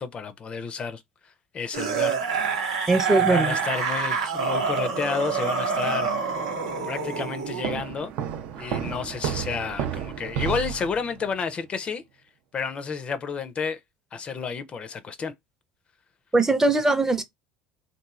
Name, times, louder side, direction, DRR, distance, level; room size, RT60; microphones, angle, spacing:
voice 1, 0.0-2.2 2.5-2.8 3.2-6.1 6.8-8.1 8.6-12.0 12.5-13.8 14.1-15.3, left 5 dB, 35° left, 0.4 m, -31 dB
sound 1, 1.7-7.7 8.8-8.9, right 5 dB, 85° right, 0.8 m, -27 dB
voice 2, 2.9-3.6 16.3-17.2, right 2 dB, 15° right, 0.5 m, -21 dB
sound 2, 7.6-11.3, right 9 dB, 65° right, 0.4 m, -31 dB
2.9 x 2.5 x 2.3 m
hypercardioid pair, 75°, 3 cm